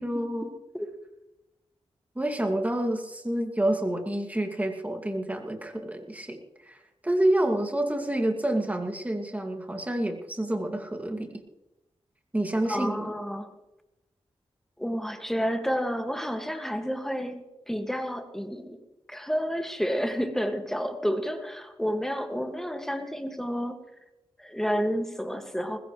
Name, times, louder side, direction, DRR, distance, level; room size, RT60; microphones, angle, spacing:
voice 1, 0.0-0.5 2.2-11.4 12.3-13.1, right 1 dB, 15° right, 3 dB, 2.4 m, -28 dB
voice 2, 12.7-13.5 14.8-18.8 19.1-23.8 24.4-25.8, equal, 5° left, 5 dB, 2.0 m, -30 dB
20.5 x 16.0 x 3.3 m, 0.95 s
cardioid pair, 70°, 11 cm